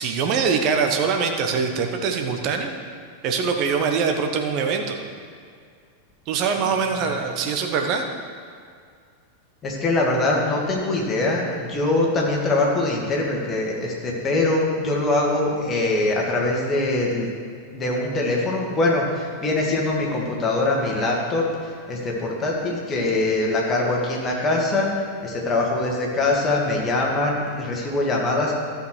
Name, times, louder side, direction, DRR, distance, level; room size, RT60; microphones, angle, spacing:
voice 1, 0.0-2.7 3.2-5.0 6.3-8.0, right 5 dB, 40° right, 4 dB, 1.1 m, -23 dB
voice 2, 9.6-17.3 17.7-28.5, left 2 dB, 20° left, -2 dB, 2.2 m, -23 dB
13.5 x 6.6 x 4.7 m, 2.1 s
figure-of-eight pair, 90°, 0 cm